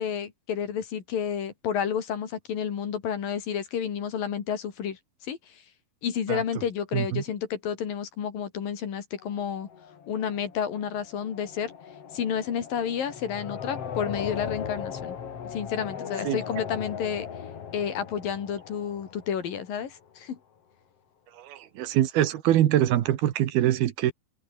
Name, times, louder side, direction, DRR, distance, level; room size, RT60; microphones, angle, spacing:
voice 1, 0.0-5.0 5.3-5.6 6.0-9.7 10.1-11.7 12.1-15.2 15.5-17.3 17.7-20.4, left 8 dB, 65° left, 4.3 m, -30 dB
voice 2, 6.9-7.2 16.2-16.4 21.3-24.1, right 12 dB, 80° right, 3.4 m, -24 dB
sound 1, 9.2-20.0, left 7 dB, 45° left, 2.7 m, -39 dB
omnidirectional pair, 4.4 m